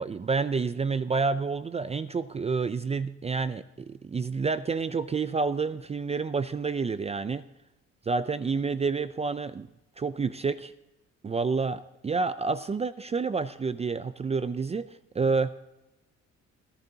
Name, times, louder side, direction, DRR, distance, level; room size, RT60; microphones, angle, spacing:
voice 1, 0.0-7.4 8.1-9.7 10.0-10.7 11.2-14.9 15.1-15.5, right 4 dB, 20° right, 13 dB, 0.4 m, -29 dB
29.5 x 11.0 x 2.8 m, 0.98 s
cardioid pair, 125°, 29 cm